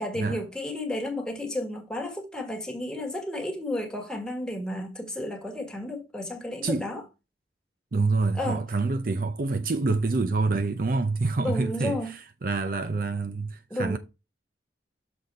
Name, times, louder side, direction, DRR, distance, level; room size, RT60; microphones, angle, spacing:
voice 1, 0.0-7.0 8.3-8.6 11.3-12.1 13.7-14.0, left 1 dB, 5° left, 1.5 m, -32 dB
voice 2, 7.9-14.0, right 3 dB, 50° right, 0.5 m, -27 dB
6.7 x 4.0 x 4.2 m
head